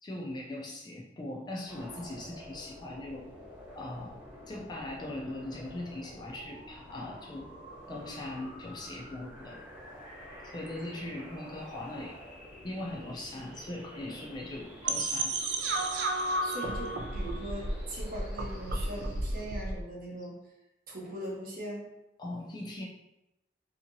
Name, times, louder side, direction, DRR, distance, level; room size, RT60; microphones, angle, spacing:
voice 1, 0.0-3.3 3.7-4.2 4.5-7.5 7.9-9.6 10.4-12.2 12.6-15.4 20.2-20.3 22.2-22.9, left 1 dB, 25° left, 0 dB, 0.3 m, -40 dB
sound 1, 1.6-19.6, equal, 10° right, 0.9 m, -49 dB
sound 2, 14.8-19.8, right 2 dB, 70° right, 0.4 m, -32 dB
voice 2, 16.4-20.4 20.9-21.9, right 1 dB, 50° right, -3 dB, 0.7 m, -40 dB
2.7 x 2.7 x 2.5 m, 0.90 s
head